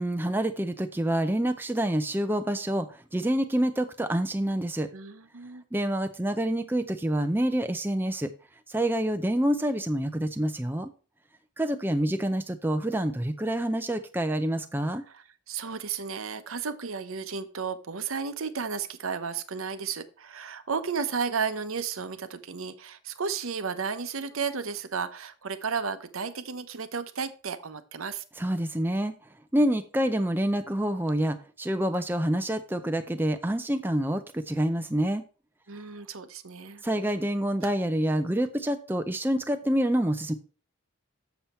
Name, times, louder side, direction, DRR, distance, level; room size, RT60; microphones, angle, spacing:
voice 1, 0.0-4.9 5.7-8.3 8.7-10.9 11.6-15.0 28.4-29.1 29.5-35.2 36.8-40.3, right 1 dB, 10° right, 7 dB, 0.5 m, -27 dB
voice 2, 4.9-5.6 15.1-28.2 35.7-36.8, right 5 dB, 80° right, 11 dB, 0.9 m, -33 dB
7.2 x 7.0 x 4.3 m, 0.37 s
head